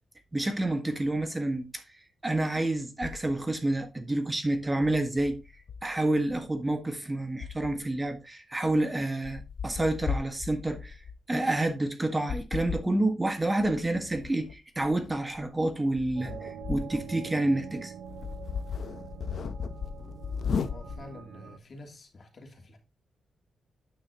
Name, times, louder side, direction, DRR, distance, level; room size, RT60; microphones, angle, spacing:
voice 1, 0.3-1.8 2.2-5.4 5.8-11.0 11.3-17.9, right 2 dB, 15° right, 1.6 m, -29 dB
sound 1, 3.0-3.6 4.8-6.8 7.4-8.0 8.7-8.8 9.2-11.2 12.3-12.9 13.6-17.1 17.5-17.6 18.0-21.2, left 6 dB, 60° left, 0.8 m, -36 dB
sound 2, 16.2-21.6, right 7 dB, 65° right, 1.3 m, -44 dB
voice 2, 20.7-22.8, left 2 dB, 45° left, 2.9 m, -48 dB
9.4 x 6.2 x 2.9 m
cardioid pair, 110°, 0 cm